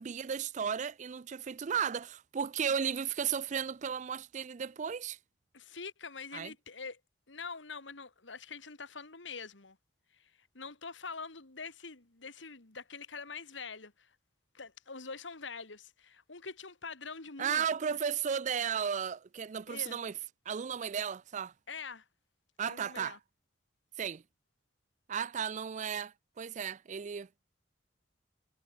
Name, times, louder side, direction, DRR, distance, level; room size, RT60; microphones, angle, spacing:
voice 1, 0.0-5.2 6.3-6.5 17.4-20.1 20.5-21.5 22.6-23.2 24.0-24.2 25.1-27.3, right 7 dB, 40° right, 0.4 m, -34 dB
voice 2, 5.5-7.0 7.3-9.8 10.2-14.1 14.5-18.0 19.7-20.0 21.7-22.0 22.6-23.2, left 5 dB, 90° left, 2.5 m, -45 dB
head